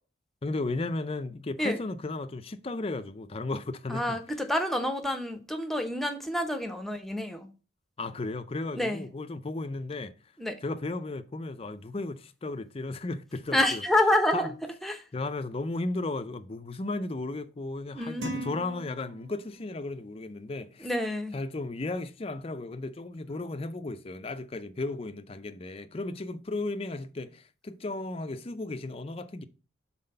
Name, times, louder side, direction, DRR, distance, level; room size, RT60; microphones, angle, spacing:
voice 1, 0.4-4.2 8.0-10.1 10.6-13.8 14.3-14.5 15.1-20.9 21.3-29.4, left 2 dB, 30° left, 0.5 m, -35 dB
voice 2, 3.9-7.5 8.7-9.0 10.4-10.6 13.5-14.5 14.8-15.0 17.9-18.5 20.8-21.3, left 1 dB, ahead, 0.8 m, -28 dB
sound 1, 18.2-19.7, left 1 dB, 65° right, 1.6 m, -41 dB
5.7 x 4.3 x 5.4 m
head